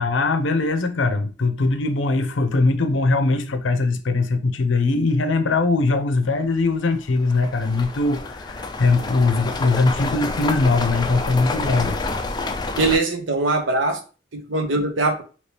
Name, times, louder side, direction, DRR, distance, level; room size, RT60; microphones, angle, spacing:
voice 1, 0.0-12.0, left 3 dB, 75° left, 0.5 m, -21 dB
sound 1, 6.2-6.3 6.9-13.0, left 3 dB, 20° left, 0.3 m, -28 dB
voice 2, 12.8-14.0 14.3-15.2, right 2 dB, 75° right, 0.7 m, -21 dB
2.9 x 2.9 x 3.3 m
head